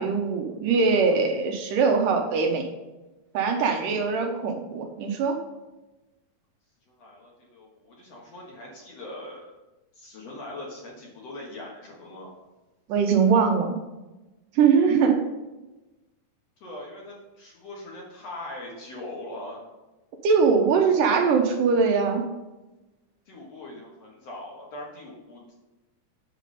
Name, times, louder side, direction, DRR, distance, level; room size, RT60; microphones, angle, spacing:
voice 1, 0.0-2.7 3.3-5.4 12.9-13.8 14.6-15.2 20.2-22.2, right 5 dB, 75° right, 3 dB, 2.3 m, -22 dB
voice 2, 6.9-9.5 10.0-12.3 16.6-19.6 23.3-25.5, left 1 dB, 55° left, -2 dB, 2.1 m, -41 dB
8.2 x 6.8 x 4.2 m, 1.1 s
omnidirectional pair, 4.1 m